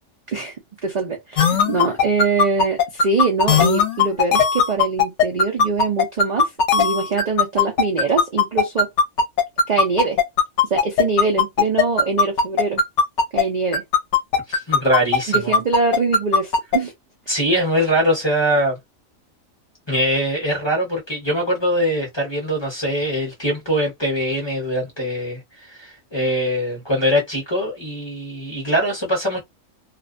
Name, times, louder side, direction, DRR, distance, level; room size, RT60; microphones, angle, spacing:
voice 1, 0.8-8.9 9.7-10.2 10.7-12.8 13.3-13.8 15.3-16.9, right 4 dB, 65° right, 0.4 m, -23 dB
sound 1, 1.4-13.4 13.7-16.8, left 5 dB, 65° left, 0.9 m, -17 dB
voice 2, 14.5-15.5 17.3-18.8 19.9-29.4, equal, 25° left, 0.8 m, -22 dB
2.5 x 2.1 x 2.4 m
omnidirectional pair, 1.4 m